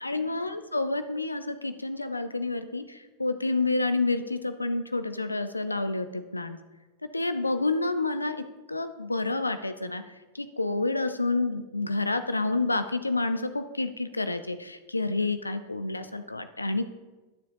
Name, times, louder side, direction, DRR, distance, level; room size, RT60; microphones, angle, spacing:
voice 1, 0.0-6.6 7.1-10.0 10.3-16.9, left 2 dB, 85° left, 11 dB, 0.6 m, -29 dB
20.5 x 7.2 x 2.7 m, 1.2 s
figure-of-eight pair, 90°, 0 cm